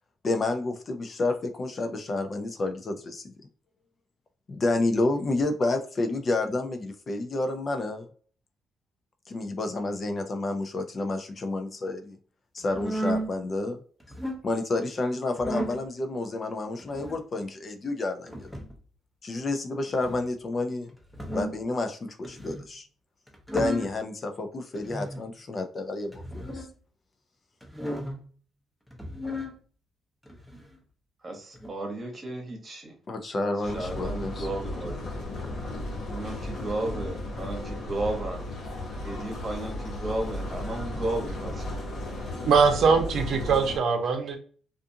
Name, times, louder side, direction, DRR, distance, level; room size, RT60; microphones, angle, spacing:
voice 1, 0.2-3.2 4.5-8.1 9.3-12.2 12.5-13.8 14.4-18.6 19.2-20.9 21.3-22.9 23.5-26.7 33.1-34.5, left 2 dB, 40° left, 0.5 m, -30 dB
sound 1, 12.7-13.3 14.0-14.4 15.4-15.8 16.8-17.2 18.3-18.8 19.9-20.3 21.0-21.6 22.2-22.7 23.3-24.0 24.8-25.2 26.1-26.7 27.6-28.2 28.9-29.5 30.3-30.8 31.5-31.7, equal, ahead, 0.7 m, -34 dB
voice 2, 31.2-32.9 33.7-35.0 36.1-38.4 39.0-41.7, right 2 dB, 35° right, 1.0 m, -34 dB
sound 2, 33.6-43.8, left 1 dB, 70° left, 1.0 m, -35 dB
voice 3, 42.4-44.4, right 5 dB, 70° right, 0.6 m, -22 dB
2.5 x 2.4 x 2.6 m
cardioid pair, 90°, 0 cm